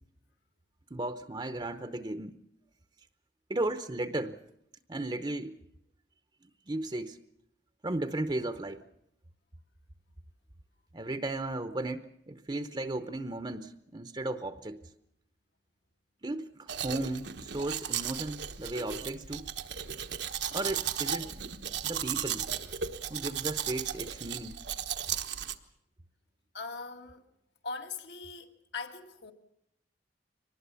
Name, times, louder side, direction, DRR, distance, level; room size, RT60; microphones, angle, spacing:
voice 1, 0.9-2.3 3.5-4.4 4.9-5.6 6.7-7.2 7.8-8.9 10.9-14.9 16.2-19.5 20.5-21.4 21.8-22.5 23.1-24.6, right 2 dB, 25° right, 0.8 m, -35 dB
Domestic sounds home sounds, 16.7-25.5, right 9 dB, 80° right, 1.2 m, -35 dB
voice 2, 26.5-27.2 27.6-29.3, left 4 dB, 75° left, 2.0 m, -41 dB
24.0 x 20.0 x 6.9 m
head